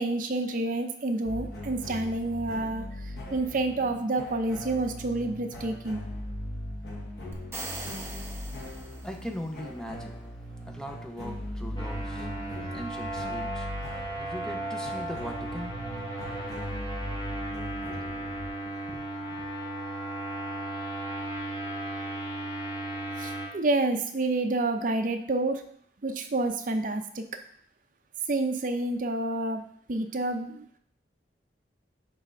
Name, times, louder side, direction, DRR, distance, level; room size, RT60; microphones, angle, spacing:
voice 1, 0.0-6.0 23.2-25.6 26.0-27.3 28.3-29.6 29.9-30.8, right 2 dB, 50° right, 6 dB, 0.6 m, -29 dB
sound 1, 1.2-18.5, left 1 dB, 65° left, 1.2 m, -39 dB
sound 2, 7.3-9.4, right 2 dB, 15° right, 0.8 m, -40 dB
voice 2, 8.6-19.5, equal, 5° left, 4 dB, 0.4 m, -42 dB
sound 3, 11.8-23.5, right 1 dB, 25° left, 2.0 m, -35 dB
9.8 x 3.3 x 3.8 m, 0.63 s
head